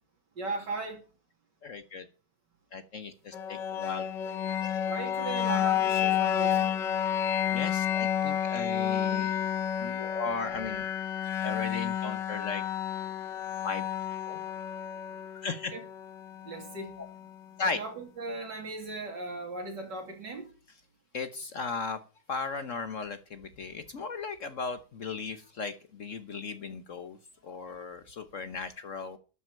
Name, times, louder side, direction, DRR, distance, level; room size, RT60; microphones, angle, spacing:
voice 1, 0.4-1.0 4.9-6.8 15.7-15.8 16.4-17.0 17.8-17.9 18.2-20.5, right 3 dB, 75° right, 1 dB, 3.3 m, -37 dB
voice 2, 1.6-2.1 2.7-4.6 7.5-9.3 9.8-10.8 11.4-12.6 13.6-13.9 14.3-14.4 15.3-15.7 17.0-17.1 17.6-17.8 21.1-22.0 22.3-27.2 27.4-29.2, left 4 dB, 50° left, 11 dB, 1.2 m, -36 dB
sound 1, 3.3-17.3, left 9 dB, 90° left, 1.8 m, -30 dB
12.0 x 6.2 x 8.5 m, 0.36 s
omnidirectional pair, 1.9 m